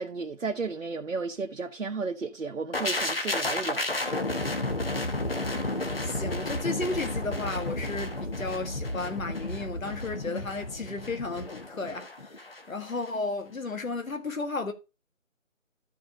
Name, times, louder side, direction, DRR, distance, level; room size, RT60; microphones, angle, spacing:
voice 1, 0.0-3.8, right 4 dB, 70° right, 1.0 m, -33 dB
sound 1, 2.7-12.6 12.9-13.1, left 2 dB, 45° left, 1.2 m, -32 dB
voice 2, 5.7-14.7, left 3 dB, 75° left, 1.6 m, -34 dB
13.0 x 4.7 x 3.8 m
figure-of-eight pair, 175°, 41 cm